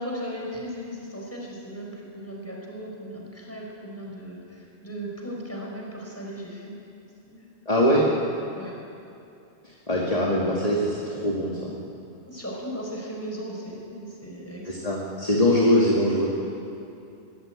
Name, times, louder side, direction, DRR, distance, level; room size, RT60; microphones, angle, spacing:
voice 1, 0.0-6.7 7.2-7.4 8.5-8.8 12.3-15.0, equal, 10° left, -2 dB, 5.2 m, -37 dB
voice 2, 7.7-8.0 9.9-11.8 14.7-16.3, left 1 dB, 30° left, -3 dB, 2.4 m, -22 dB
21.5 x 16.0 x 9.0 m, 2.6 s
omnidirectional pair, 1.2 m